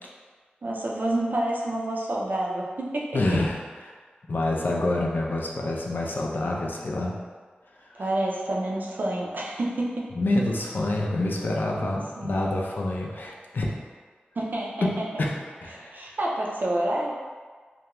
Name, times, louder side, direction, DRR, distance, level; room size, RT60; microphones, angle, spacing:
voice 1, 0.6-3.1 7.9-10.0 11.8-12.5 14.4-15.1 15.7-17.1, right 1 dB, 60° right, -3 dB, 0.4 m, -28 dB
voice 2, 3.1-3.9 4.3-7.1 7.9-8.0 10.1-13.7 14.8-14.9 15.2-15.3 15.6-16.2, left 2 dB, 65° left, -2 dB, 0.4 m, -27 dB
2.4 x 2.1 x 2.9 m, 1.5 s
wide cardioid pair, 65°, 3 cm